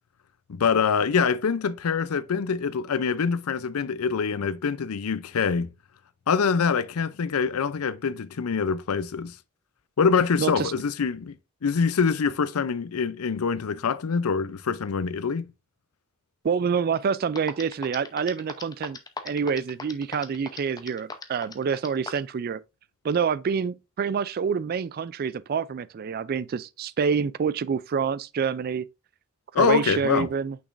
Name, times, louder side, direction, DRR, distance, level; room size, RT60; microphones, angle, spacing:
voice 1, 0.5-5.7 6.3-9.3 10.0-11.3 11.6-15.5 29.5-30.3, left 5 dB, 90° left, 0.5 m, -25 dB
voice 2, 10.4-10.7 16.4-19.0 19.2-22.6 23.0-28.9 29.6-30.6, right 6 dB, 45° right, 0.3 m, -27 dB
sound 1, 17.0-17.1 17.3-22.3, left 4 dB, 20° left, 0.7 m, -37 dB
6.3 x 6.0 x 2.5 m
head